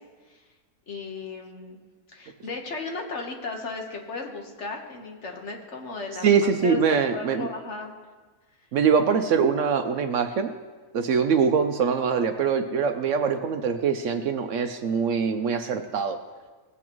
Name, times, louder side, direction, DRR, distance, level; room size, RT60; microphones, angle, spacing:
voice 1, 0.9-1.8 2.1-6.3 6.6-7.9, left 3 dB, 55° left, 2 dB, 1.4 m, -35 dB
voice 2, 6.2-7.5 8.7-10.5 10.9-16.2, right 6 dB, 65° right, 8 dB, 0.8 m, -23 dB
18.0 x 8.3 x 3.0 m, 1.4 s
omnidirectional pair, 1.5 m